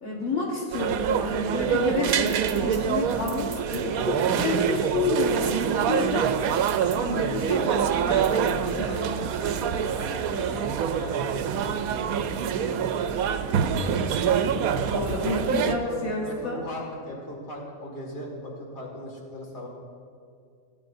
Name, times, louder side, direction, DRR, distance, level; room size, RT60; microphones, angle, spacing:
voice 1, 0.0-6.2 6.9-9.0 14.8-16.6, left 2 dB, 75° left, -4 dB, 1.8 m, -29 dB
sound 1, 0.7-15.7, right 7 dB, 85° right, 1.0 m, -26 dB
voice 2, 5.9-6.3 8.5-13.2 14.1-19.7, left 1 dB, 50° left, -2 dB, 2.2 m, -39 dB
16.5 x 11.0 x 2.6 m, 2.2 s
omnidirectional pair, 1.5 m